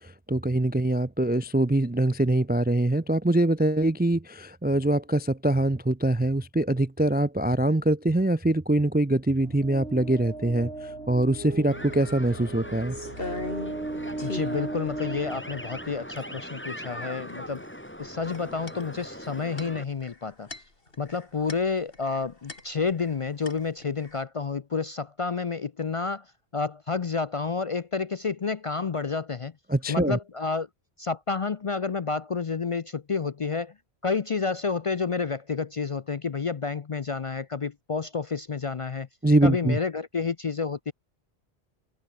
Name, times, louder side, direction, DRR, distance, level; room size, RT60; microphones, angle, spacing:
voice 1, 0.3-10.7 11.1-13.0 29.7-30.2 39.2-39.8, right 1 dB, 15° right, 0.3 m, -23 dB
sound 1, 9.4-16.3, right 2 dB, 75° right, 4.0 m, -37 dB
sound 2, 11.7-19.8, equal, 10° left, 7.6 m, -40 dB
sound 3, 12.5-13.9 14.2-14.6 15.2-15.3 15.5-16.2 17.3-17.7 18.0-23.2 23.5-24.2, left 2 dB, 60° left, 3.6 m, -39 dB
voice 2, 14.2-17.6 18.0-20.5 21.0-29.5 29.9-30.7 31.0-33.7 34.0-39.1 39.4-40.9, left 5 dB, 40° left, 0.5 m, -30 dB
omnidirectional pair, 1.1 m